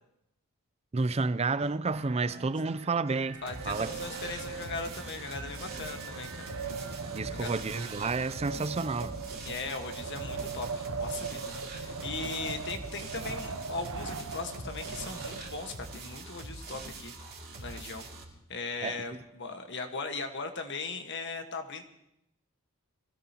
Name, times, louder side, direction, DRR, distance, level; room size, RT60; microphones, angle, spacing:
voice 1, 0.9-3.9 7.1-9.2 18.8-19.0, right 3 dB, 30° right, 0.4 m, -30 dB
sound 1, 1.9-8.6, right 3 dB, 85° right, 2.1 m, -49 dB
Wind, 3.3-15.9, right 4 dB, 70° right, 0.8 m, -40 dB
voice 2, 3.4-6.5 7.3-7.5 9.4-17.1 17.6-18.1 18.5-21.8, left 4 dB, 55° left, 1.5 m, -39 dB
sound 2, 3.5-18.2, right 2 dB, 45° right, 2.8 m, -44 dB
23.5 x 16.5 x 3.0 m
head